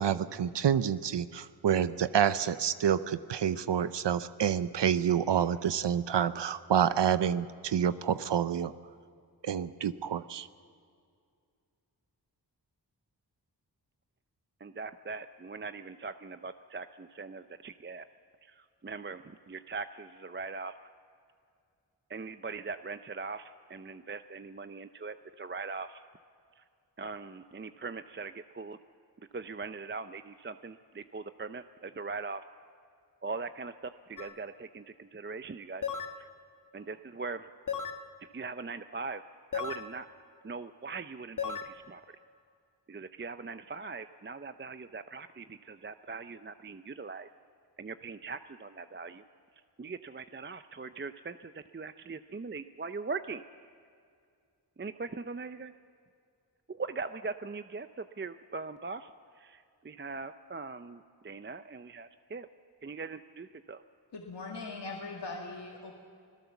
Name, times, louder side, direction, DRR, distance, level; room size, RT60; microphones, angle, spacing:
voice 1, 0.0-8.7 9.4-10.5, right 8 dB, 80° right, 13 dB, 0.7 m, -28 dB
voice 2, 14.6-18.0 18.4-20.7 22.1-26.0 26.6-26.7 27.0-28.8 29.3-32.4 33.2-35.8 36.2-36.3 36.7-37.5 38.3-39.2 39.5-40.1 40.4-42.0 42.9-47.3 47.8-49.2 49.8-53.4 54.8-55.7 56.7-59.1 59.4-62.5 62.8-63.8, right 4 dB, 25° right, 10 dB, 0.6 m, -41 dB
sound 1, 34.2-34.3 35.8-36.2 37.7-38.0 39.5-39.9 41.4-41.7, left 7 dB, 45° left, 1.4 m, -35 dB
voice 3, 64.1-65.9, left 3 dB, 75° left, 0 dB, 2.2 m, -40 dB
25.5 x 17.0 x 7.1 m, 2.3 s
cardioid pair, 60°, 42 cm